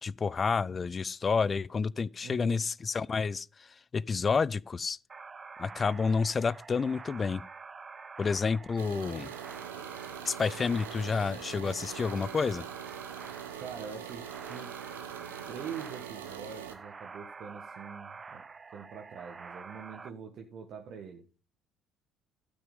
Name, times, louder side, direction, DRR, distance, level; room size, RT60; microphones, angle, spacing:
voice 1, 0.0-5.0 5.6-7.4 8.2-9.3 10.3-12.6, left 5 dB, 35° left, 0.4 m, -30 dB
voice 2, 2.2-2.6 13.6-14.7 15.5-18.4 18.7-21.2, right 6 dB, 55° right, 1.6 m, -44 dB
sound 1, 5.1-20.1, right 4 dB, 30° right, 0.6 m, -47 dB
sound 2, 8.8-16.8, right 9 dB, 85° right, 1.0 m, -43 dB
12.0 x 6.2 x 5.3 m
hypercardioid pair, 55°, 0 cm